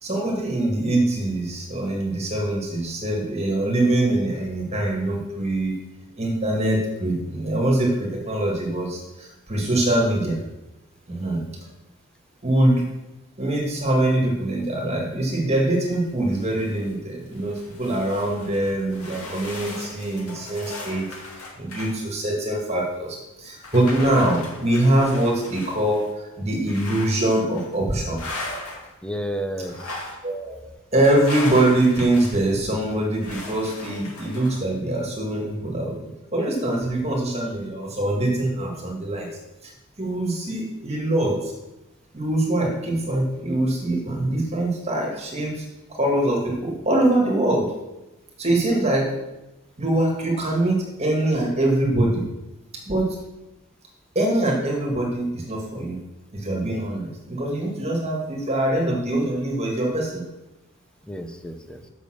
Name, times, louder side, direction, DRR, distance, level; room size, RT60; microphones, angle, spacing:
voice 1, 0.0-5.8 6.1-10.4 11.1-11.4 12.4-12.9 13.4-21.1 21.6-28.5 30.2-30.6 30.9-36.0 36.3-39.3 39.6-39.7 40.0-41.5 42.1-45.6 45.9-47.7 48.4-49.1 49.8-52.2 52.9-53.2 54.2-56.0 56.3-60.2, right 1 dB, 30° right, -1 dB, 1.9 m, -23 dB
voice 2, 11.1-11.5 29.0-30.0 61.1-61.8, equal, 5° left, 6 dB, 0.6 m, -32 dB
sound 1, 16.0-16.9 17.3-21.9 22.5-22.6 23.6-26.1 26.7-27.2 27.5-27.7 28.2-28.9 29.6-30.2 31.0-32.4 33.2-34.6, left 2 dB, 90° left, 2.2 m, -37 dB
6.9 x 6.8 x 6.4 m, 1.0 s
head